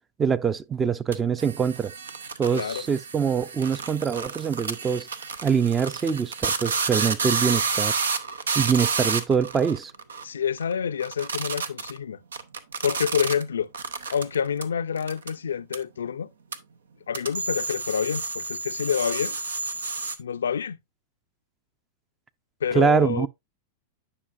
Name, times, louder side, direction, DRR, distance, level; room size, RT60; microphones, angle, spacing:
voice 1, 0.2-1.9 2.4-5.1 5.4-7.9 8.6-9.9 22.7-23.3, right 6 dB, 20° right, 0.5 m, -24 dB
sound 1, 1.1-10.2 10.6-10.7 11.0-12.0 12.3-13.4 13.7-14.6 15.0-15.3 15.7-15.8 16.5-16.6 17.1-20.2, right 5 dB, 85° right, 0.7 m, -30 dB
voice 2, 2.5-2.9 10.2-12.2 12.8-13.7 14.1-16.3 17.1-19.4 20.2-20.8 22.6-23.3, left 7 dB, 85° left, 0.4 m, -27 dB
9.7 x 5.5 x 2.5 m
hypercardioid pair, 105°, 0 cm